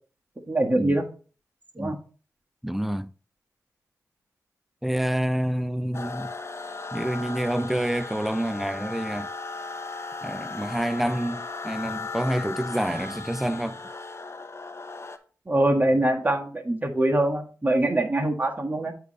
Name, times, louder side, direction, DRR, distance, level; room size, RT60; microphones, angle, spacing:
voice 1, 0.5-1.0 1.8-2.0 15.5-18.9, right 1 dB, 25° right, 1.6 m, -23 dB
voice 2, 2.6-3.1 4.8-6.3 6.9-9.3 10.2-13.8, right 1 dB, 5° right, 0.5 m, -28 dB
sound 1, 5.9-15.2, left 3 dB, 40° left, 0.8 m, -36 dB
8.2 x 3.2 x 5.4 m
cardioid pair, 50°, 7 cm